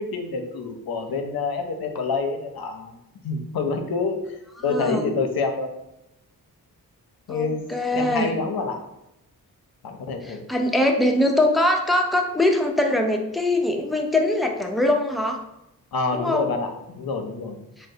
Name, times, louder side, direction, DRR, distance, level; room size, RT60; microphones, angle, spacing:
voice 1, 0.0-3.0 3.2-4.3 4.6-5.7 7.3-7.7 7.9-8.8 9.8-10.4 15.9-17.6, left 4 dB, 65° left, 5 dB, 0.5 m, -27 dB
voice 2, 4.7-5.0 7.3-8.3 10.2-15.4 16.1-16.5, left 1 dB, ahead, 2 dB, 0.3 m, -22 dB
3.8 x 2.0 x 2.6 m, 0.87 s
cardioid pair, 55°, 39 cm